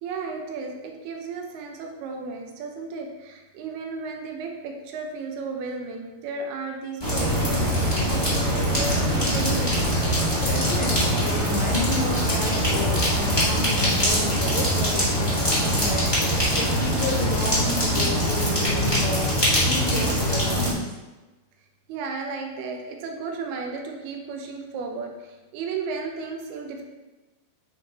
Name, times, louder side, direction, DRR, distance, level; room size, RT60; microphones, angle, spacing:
voice 1, 0.0-10.0 21.9-26.8, right 4 dB, 80° right, 2 dB, 2.8 m, -34 dB
sound 1, 7.0-20.7, equal, 35° left, 0.3 m, -23 dB
voice 2, 10.5-19.3 19.6-20.9, left 3 dB, 70° left, -5 dB, 1.8 m, -31 dB
9.6 x 4.4 x 3.0 m, 1.1 s
omnidirectional pair, 4.5 m